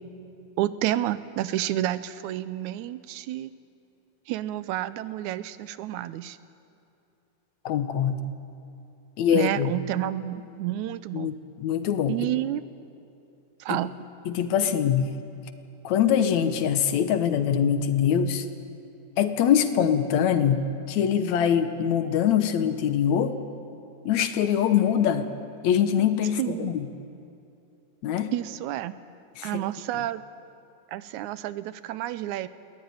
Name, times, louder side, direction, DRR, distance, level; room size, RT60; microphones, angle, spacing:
voice 1, 0.6-3.5 4.3-6.4 9.3-11.3 12.1-12.6 13.6-13.9 26.4-26.7 28.3-29.0 29.4-30.2 30.9-32.5, right 13 dB, 85° right, 15 dB, 2.1 m, -30 dB
voice 2, 7.7-8.3 9.2-9.7 11.1-12.2 13.7-13.8 14.3-15.1 15.8-18.5 19.2-23.4 24.1-25.3 25.6-26.9 28.0-28.3 29.4-29.6 29.9-30.0, left 8 dB, 75° left, 9 dB, 2.3 m, -23 dB
21.5 x 18.0 x 9.6 m, 2.7 s
omnidirectional pair, 3.3 m